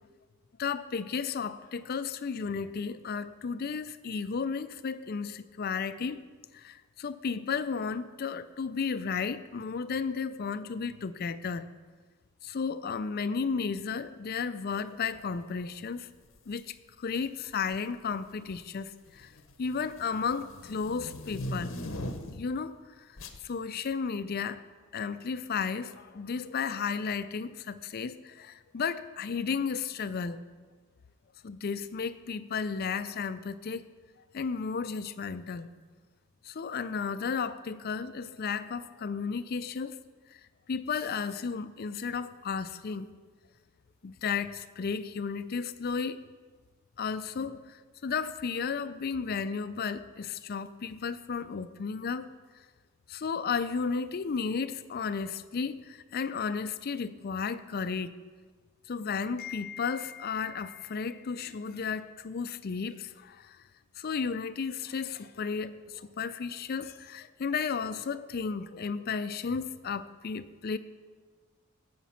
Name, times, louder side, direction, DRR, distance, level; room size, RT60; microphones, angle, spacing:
voice 1, 0.6-6.2 6.5-11.7 12.4-16.1 16.5-19.3 19.6-21.7 22.4-24.6 24.9-30.4 31.4-33.8 34.3-35.7 36.4-40.0 40.3-40.4 40.7-43.1 44.0-46.2 47.0-52.3 53.1-58.2 58.9-63.6 64.0-70.8, left 5 dB, 45° left, 13 dB, 0.4 m, -33 dB
sound 1, 16.2-16.5 17.5-18.0 18.3-22.6 23.2-23.4, left 1 dB, 60° left, 0.8 m, -40 dB
15.5 x 5.2 x 5.8 m, 1.4 s
head